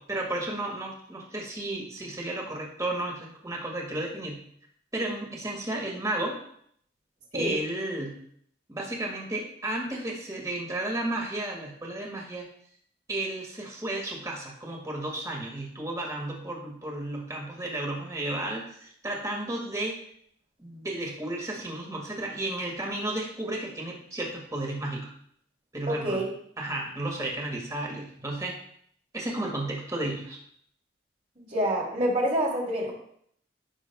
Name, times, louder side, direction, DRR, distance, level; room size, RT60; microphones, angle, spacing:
voice 1, 0.0-4.4 4.9-6.4 7.3-8.2 8.7-12.5 13.1-20.0 20.6-25.1 25.7-26.2 26.6-28.6 29.1-30.4, right 1 dB, 20° right, 0 dB, 2.0 m, -33 dB
voice 2, 25.9-26.2 31.4-32.9, right 1 dB, 40° right, -4 dB, 2.9 m, -27 dB
16.0 x 6.3 x 2.3 m, 0.66 s
head